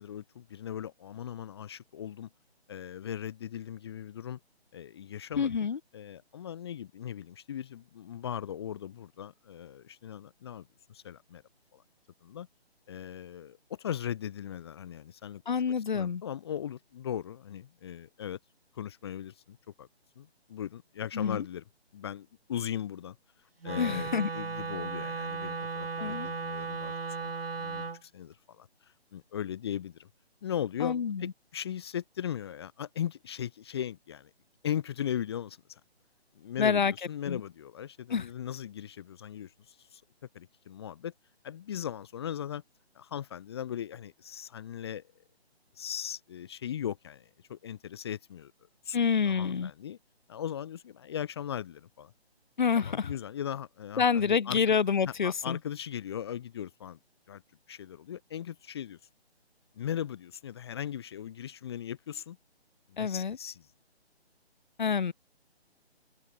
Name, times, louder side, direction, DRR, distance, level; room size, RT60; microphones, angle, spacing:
voice 1, 0.0-2.3 2.7-4.4 4.7-5.5 5.9-11.4 11.7-11.8 12.2-12.5 12.9-15.4 15.9-18.4 18.7-19.9 20.2-21.6 21.9-23.2 23.6-26.9 27.2-27.3 27.6-30.1 30.4-34.3 34.6-35.8 36.3-40.0 40.3-41.1 41.4-42.6 42.9-45.0 45.7-48.5 48.8-49.0 49.2-50.0 50.3-52.1 52.8-54.8 55.2-57.0 57.3-57.4 57.7-59.0 59.7-62.4 62.9-63.7, left 9 dB, 25° left, 1.1 m, -38 dB
voice 2, 5.4-5.8 15.5-16.2 21.1-21.4 23.8-24.3 26.0-26.3 30.8-31.3 36.6-36.9 37.3-37.4 38.1-38.3 48.9-49.7 52.6-53.1 54.0-55.6 63.0-63.4 64.8-65.1, left 6 dB, 45° left, 0.9 m, -27 dB
Wind instrument woodwind instrument, 23.6-28.0, right 4 dB, 65° right, 3.7 m, -36 dB
figure-of-eight pair, 145°, 32 cm